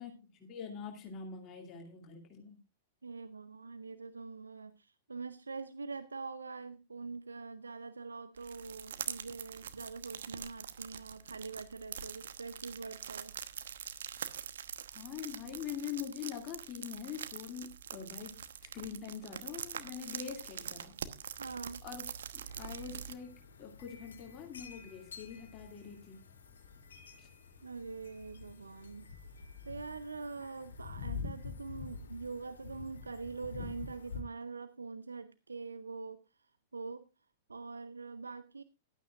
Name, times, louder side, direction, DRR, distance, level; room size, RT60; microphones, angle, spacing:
voice 1, 0.0-2.6 14.9-21.0 21.8-26.2 27.2-27.3, left 8 dB, 35° left, 1 dB, 2.4 m, -44 dB
voice 2, 3.0-13.3 21.4-21.8 27.6-29.1 29.3-37.1 37.5-38.6, right 4 dB, 85° right, 12 dB, 0.7 m, -44 dB
sound 1, 8.4-23.1, right 8 dB, 70° right, 1.1 m, -44 dB
sound 2, 22.5-34.2, left 5 dB, 75° left, 2.4 m, -47 dB
15.0 x 12.0 x 2.5 m, 0.26 s
figure-of-eight pair, 100°, 0 cm